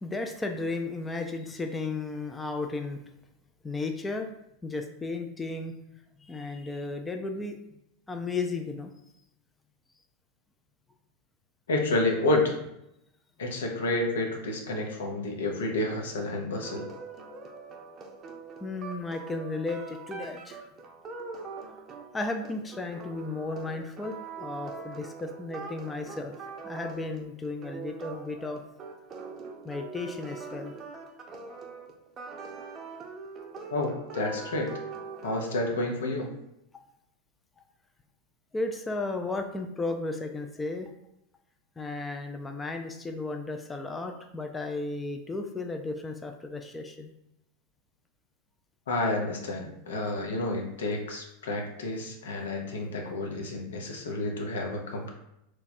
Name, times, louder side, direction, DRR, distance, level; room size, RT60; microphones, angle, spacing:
voice 1, 0.0-3.0 3.6-4.3 4.6-5.7 6.2-7.6 8.1-8.9 18.6-20.7 22.1-26.3 26.6-28.6 29.6-30.7 38.5-40.9 41.8-47.1, left 3 dB, 15° left, 4 dB, 0.4 m, -34 dB
voice 2, 11.7-12.5 13.4-16.9 33.7-34.7 35.2-36.3 48.9-55.1, left 2 dB, 80° left, 1 dB, 0.8 m, -30 dB
sound 1, 16.6-35.7, right 4 dB, 35° right, 0.6 m, -43 dB
3.1 x 2.2 x 4.2 m, 0.82 s
hypercardioid pair, 100°, 0 cm